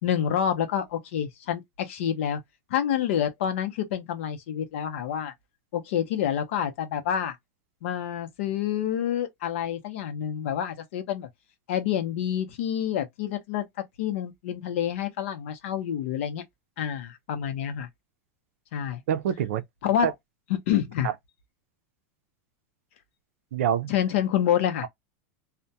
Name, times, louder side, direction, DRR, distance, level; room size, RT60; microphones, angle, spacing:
voice 1, 0.0-2.4 2.7-5.3 5.7-7.4 7.8-11.3 11.7-13.6 14.0-16.4 16.8-17.9 18.7-19.0 19.8-20.1 20.5-21.1 23.9-24.9, left 9 dB, 60° left, 0.7 m, -28 dB
voice 2, 19.1-19.6 20.0-20.1 21.0-21.1 23.5-23.9, right 9 dB, 70° right, 0.4 m, -25 dB
2.2 x 2.1 x 2.7 m
supercardioid pair, 175°, 8 cm